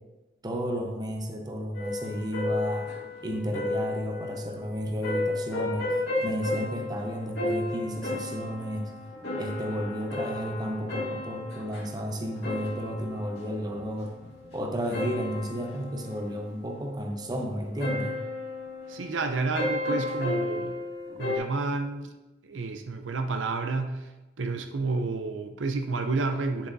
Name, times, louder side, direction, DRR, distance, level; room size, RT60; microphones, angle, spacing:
voice 1, 0.4-2.9 3.2-5.9 6.2-9.0 9.4-14.2 14.5-18.2, equal, 20° right, 2 dB, 0.8 m, -32 dB
sound 1, 1.7-21.4, left 2 dB, 55° left, 2.3 m, -34 dB
voice 2, 18.9-20.8 21.2-22.1 22.4-24.1 24.4-26.7, right 3 dB, 80° right, 6 dB, 0.6 m, -30 dB
9.4 x 7.1 x 2.6 m, 1.1 s
head